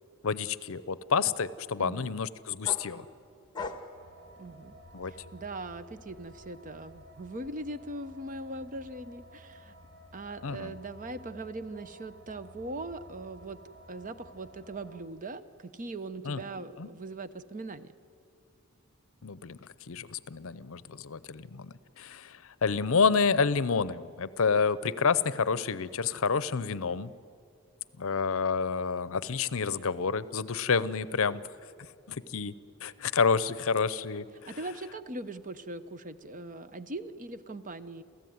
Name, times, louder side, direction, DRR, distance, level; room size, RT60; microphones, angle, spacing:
voice 1, 0.2-3.0 4.9-5.1 10.4-10.7 16.2-16.4 16.8-16.9 19.2-27.1 28.0-31.4 32.1-32.6 32.8-34.5, left 5 dB, 65° left, 17 dB, 0.7 m, -29 dB
voice 2, 1.8-2.2 4.4-4.8 5.1-9.8 10.1-13.6 13.9-17.9 34.5-38.0, right 2 dB, 35° right, 12 dB, 0.8 m, -40 dB
sound 1, 2.6-5.3 5.7-7.7, left 3 dB, 20° left, 1.6 m, -43 dB
sound 2, 3.9-15.0, equal, 85° right, 4.6 m, -53 dB
28.5 x 15.0 x 9.4 m, 2.4 s
head